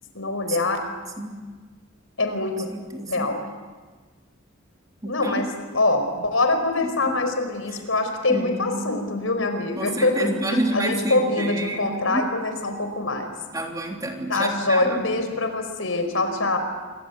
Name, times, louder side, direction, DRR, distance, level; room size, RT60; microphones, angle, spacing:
voice 1, 0.1-0.8 2.2-2.7 3.1-3.4 5.0-5.5 5.7-13.3 14.3-16.6, left 2 dB, 75° left, 7 dB, 4.9 m, -24 dB
voice 2, 2.7-3.3 5.0-5.5 6.8-7.1 8.3-9.0 9.8-12.3 13.5-15.2, right 1 dB, 15° right, 1 dB, 3.3 m, -29 dB
28.0 x 24.5 x 8.3 m, 1.4 s
head